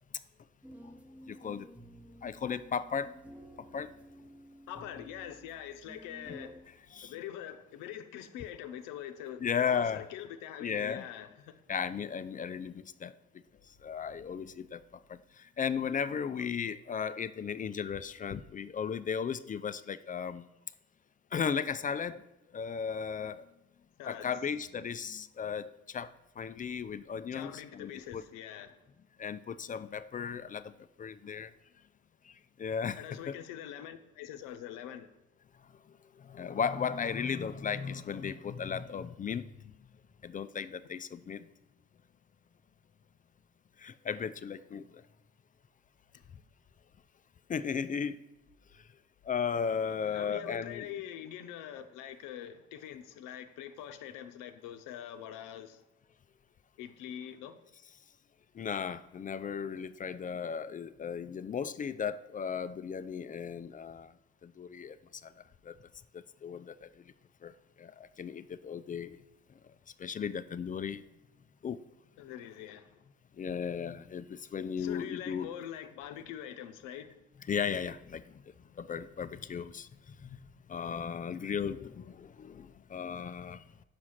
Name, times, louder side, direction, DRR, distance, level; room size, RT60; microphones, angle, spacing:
sound 1, 0.6-6.6, equal, 5° right, 0.8 m, -52 dB
voice 1, 1.3-1.7 2.2-3.1 3.7-3.9 6.9-7.1 9.4-10.0 10.6-11.1 11.7-13.1 13.8-14.8 15.1-20.5 21.3-22.2 22.5-23.4 24.0-28.2 29.2-30.7 31.0-31.5 32.3-32.4 32.6-33.3 36.2-39.7 40.2-41.5 43.8-45.0 47.5-48.2 49.2-50.9 58.5-64.1 64.4-65.0 65.2-65.3 65.6-65.8 66.1-66.9 67.4-67.5 67.8-69.2 70.0-71.0 71.6-71.8 73.4-75.5 77.5-78.2 78.8-80.4 80.7-83.6, left 7 dB, 25° left, 0.3 m, -35 dB
voice 2, 4.7-6.6 7.0-11.6 16.4-16.5 24.0-24.3 27.3-28.8 33.0-35.1 49.8-55.8 56.8-57.6 72.2-73.0 74.8-77.2, left 10 dB, 75° left, 0.7 m, -44 dB
6.0 x 4.9 x 5.7 m
hypercardioid pair, 55°, 32 cm